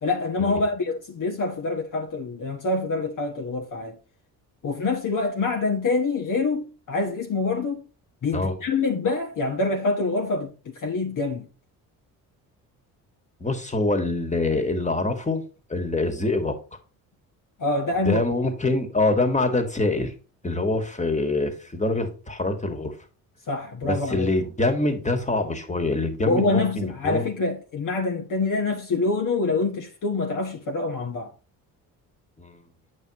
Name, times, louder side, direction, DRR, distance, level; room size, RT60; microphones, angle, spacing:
voice 1, 0.0-4.0 4.6-7.8 8.2-11.5 17.6-18.2 23.5-24.3 26.2-31.3, left 3 dB, 40° left, 1.3 m, -26 dB
voice 2, 13.4-15.4 15.7-16.6 18.0-20.1 20.4-22.9 23.8-27.3 32.4-32.6, left 2 dB, 15° left, 1.9 m, -25 dB
8.8 x 6.5 x 3.0 m
hypercardioid pair, 50°, 46 cm